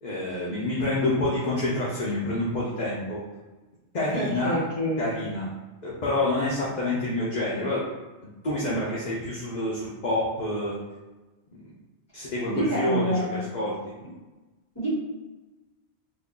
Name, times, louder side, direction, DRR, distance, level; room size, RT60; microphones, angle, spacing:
voice 1, 0.0-3.2 3.9-4.6 5.0-5.5 5.8-7.8 8.4-10.8 12.1-13.9, left 1 dB, 45° left, -6 dB, 0.7 m, -28 dB
voice 2, 4.1-5.0 12.5-13.4 14.7-14.9, equal, 20° left, -8 dB, 1.4 m, -27 dB
2.7 x 2.6 x 3.6 m, 1.1 s
omnidirectional pair, 1.2 m